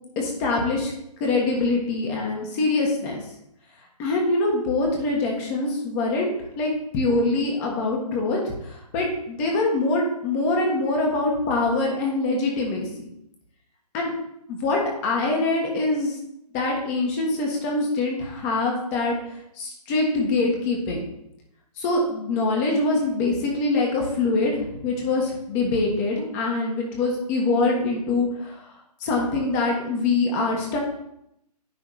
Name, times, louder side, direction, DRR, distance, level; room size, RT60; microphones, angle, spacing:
voice 1, 0.1-0.9 1.2-3.2 4.0-12.9 13.9-14.1 14.5-16.2 16.5-19.2 19.6-21.0 21.8-28.6 29.0-30.8, left 2 dB, 25° left, 0 dB, 1.4 m, -24 dB
9.7 x 3.6 x 4.8 m, 0.78 s
figure-of-eight pair, 140°, 21 cm